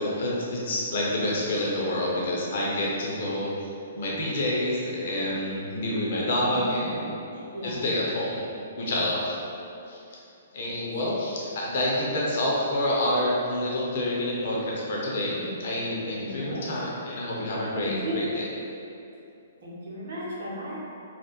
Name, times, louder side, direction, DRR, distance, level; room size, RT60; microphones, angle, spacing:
voice 1, 0.0-3.7 3.9-7.1 7.6-8.4 8.8-9.4 9.9-10.0 10.5-18.4, left 1 dB, 60° left, -4 dB, 0.7 m, -28 dB
voice 2, 6.5-7.0 7.3-7.8 10.6-10.9 16.1-16.7 17.7-18.3 19.6-20.8, right 1 dB, 65° right, -6 dB, 0.9 m, -35 dB
3.3 x 2.3 x 2.9 m, 2.7 s
hypercardioid pair, 125°, 0 cm